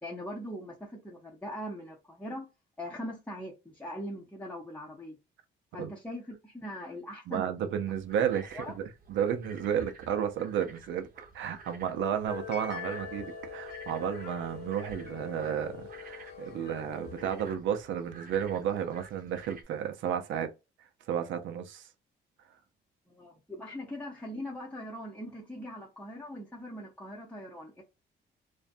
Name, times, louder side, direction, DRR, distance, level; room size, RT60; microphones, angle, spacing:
voice 1, 0.0-2.5 2.8-5.2 5.7-7.5 8.6-8.7 23.1-27.8, equal, 5° left, 0.7 m, -41 dB
voice 2, 7.3-11.1 11.3-20.5 21.1-21.9, right 8 dB, 75° right, 0.5 m, -32 dB
sound 1, 7.8-19.6, right 4 dB, 45° right, 0.8 m, -52 dB
sound 2, 12.3-17.5, left 7 dB, 55° left, 0.9 m, -43 dB
2.5 x 2.1 x 2.5 m
cardioid pair, 90°, 20 cm